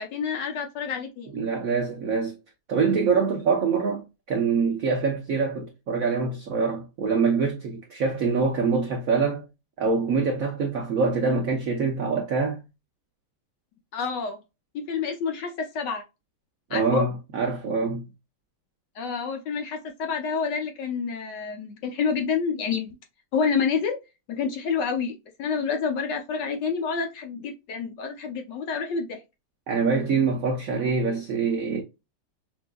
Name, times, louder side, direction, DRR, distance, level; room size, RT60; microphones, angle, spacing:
voice 1, 0.0-1.3 13.9-14.4 14.7-16.0 16.7-17.0 18.9-22.9 23.3-24.0 24.3-29.2, left 5 dB, 70° left, 1.1 m, -28 dB
voice 2, 1.3-2.4 2.7-9.5 9.8-12.6 16.7-18.0 29.7-31.8, right 4 dB, 85° right, 0.7 m, -25 dB
5.8 x 2.6 x 2.2 m
omnidirectional pair, 2.4 m